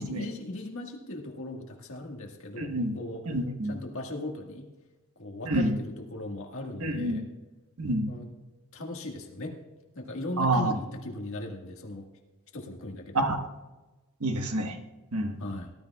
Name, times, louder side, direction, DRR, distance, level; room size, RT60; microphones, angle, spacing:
voice 1, 0.0-3.3 3.7-4.7 5.2-7.2 8.1-8.3 8.7-9.6 10.0-12.1 12.5-13.2 15.4-15.7, left 1 dB, 65° left, 1 dB, 1.7 m, -38 dB
voice 2, 2.6-2.9 3.3-3.8 5.4-5.8 6.8-7.2 7.8-8.1 10.4-10.7 13.1-13.4 14.2-14.8 15.1-15.4, right 1 dB, 90° right, 5 dB, 1.3 m, -28 dB
18.5 x 12.5 x 2.3 m, 1.2 s
head